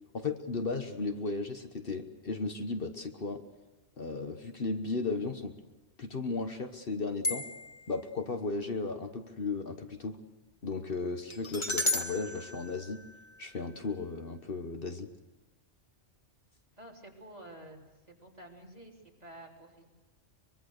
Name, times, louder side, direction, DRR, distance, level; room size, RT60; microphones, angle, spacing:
voice 1, 0.1-3.4 4.0-5.5 6.0-7.5 7.9-10.2 10.6-13.0 13.4-15.1, left 3 dB, 50° left, 7 dB, 1.3 m, -35 dB
sound 1, 7.2-7.9 11.3-13.5, left 2 dB, 25° left, 1.7 m, -34 dB
voice 2, 16.8-17.8 18.1-19.8, right 1 dB, 35° right, -1 dB, 3.8 m, -50 dB
23.5 x 22.5 x 6.6 m, 1.2 s
omnidirectional pair, 1.2 m